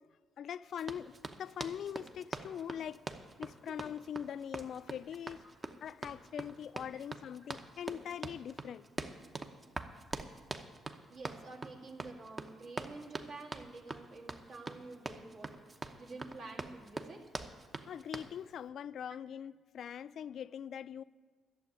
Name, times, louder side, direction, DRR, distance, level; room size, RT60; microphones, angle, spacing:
voice 1, 0.4-3.0 3.4-5.4 5.8-8.9 17.8-21.0, left 9 dB, 65° left, 0.3 m, -42 dB
Run, 0.8-18.3, right 3 dB, 30° right, 0.8 m, -44 dB
voice 2, 11.1-15.6 15.9-17.2, right 3 dB, 65° right, 2.1 m, -49 dB
11.5 x 7.0 x 9.5 m
cardioid pair, 90°, 0 cm